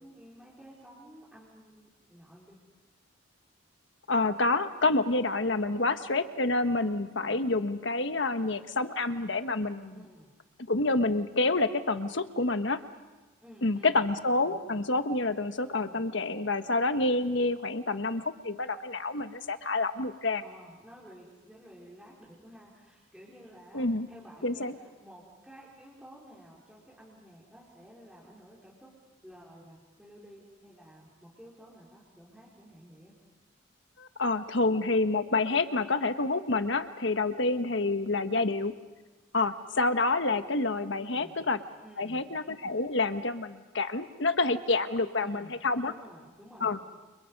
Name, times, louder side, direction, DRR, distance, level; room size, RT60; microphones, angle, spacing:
voice 1, 0.0-2.6 5.4-5.9 7.2-7.4 9.9-10.3 13.4-14.8 15.7-16.0 20.4-29.0 29.2-33.1 41.0-41.4 41.8-42.3 45.2-45.6 45.9-46.8, equal, 5° right, -7 dB, 4.4 m, -52 dB
voice 2, 4.1-10.0 10.7-12.8 13.6-20.4 23.7-24.1 24.4-24.7 34.0-38.7 39.3-41.6 42.0-45.9 46.6-46.8, left 3 dB, 65° left, 9 dB, 1.3 m, -28 dB
30.0 x 29.5 x 5.4 m, 1.2 s
head